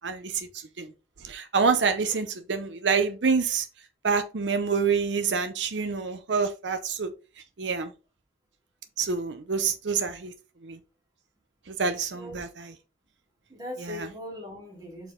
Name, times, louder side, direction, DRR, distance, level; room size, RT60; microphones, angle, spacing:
voice 1, 0.0-0.5 0.8-0.9 1.2-3.7 4.0-7.1 7.6-7.9 9.0-10.3 10.6-10.8 11.7-12.7 13.8-14.1, right 5 dB, 90° right, 0.7 m, -27 dB
voice 2, 12.1-12.5 13.5-15.1, left 1 dB, 25° right, 3.6 m, -40 dB
6.1 x 4.7 x 3.7 m
head